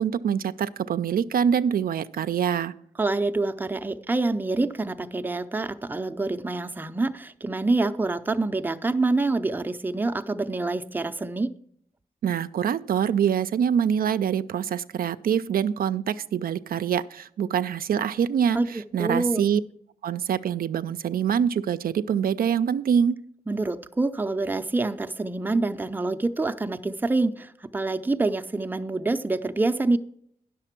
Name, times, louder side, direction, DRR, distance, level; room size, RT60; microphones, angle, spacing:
voice 1, 0.0-2.7 12.2-19.6 20.0-23.2, right 8 dB, 75° right, 11 dB, 0.4 m, -25 dB
voice 2, 3.0-11.5 18.5-18.7 19.0-19.4 23.5-30.0, right 2 dB, 10° right, 9 dB, 0.5 m, -26 dB
9.9 x 6.7 x 5.9 m, 0.69 s
cardioid pair, 85°, 15 cm